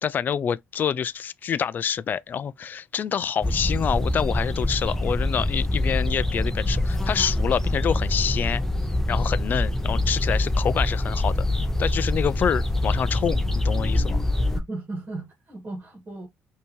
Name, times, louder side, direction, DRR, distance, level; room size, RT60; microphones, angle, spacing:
voice 1, 0.0-8.6 9.1-11.5 11.8-14.2, left 8 dB, 40° left, 0.4 m, -27 dB
sound 1, 3.4-14.6, left 1 dB, 10° left, 0.8 m, -25 dB
voice 2, 14.5-16.3, right 2 dB, 35° right, 1.8 m, -36 dB
5.4 x 2.8 x 3.0 m
cardioid pair, 125°, 5 cm